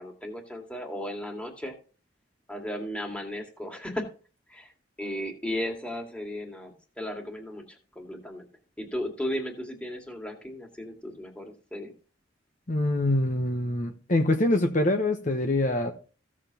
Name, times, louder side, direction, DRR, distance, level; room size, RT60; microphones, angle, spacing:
voice 1, 0.0-1.7 2.5-4.1 4.5-4.7 5.0-8.5 8.8-11.9, equal, 5° left, 2 dB, 2.1 m, -35 dB
voice 2, 12.7-15.9, left 1 dB, 40° left, 4 dB, 1.0 m, -25 dB
15.5 x 7.4 x 2.9 m, 0.37 s
head